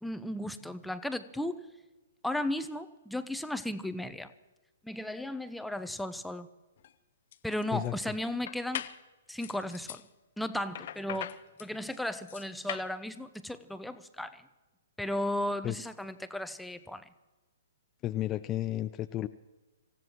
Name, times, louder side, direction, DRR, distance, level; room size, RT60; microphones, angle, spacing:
voice 1, 0.0-1.6 2.2-4.3 4.8-6.5 7.4-8.8 9.3-10.0 10.4-14.4 15.0-17.1, left 1 dB, ahead, 10 dB, 0.8 m, -35 dB
sound 1, 6.8-6.9 7.3-7.9 8.5-9.0 9.4-10.0 10.7-12.9, left 11 dB, 55° left, 0.7 m, -40 dB
voice 2, 7.7-8.1 15.6-15.8 18.0-19.3, left 13 dB, 25° left, 10 dB, 0.4 m, -33 dB
26.0 x 15.5 x 3.1 m, 1.2 s
figure-of-eight pair, 120°, 0 cm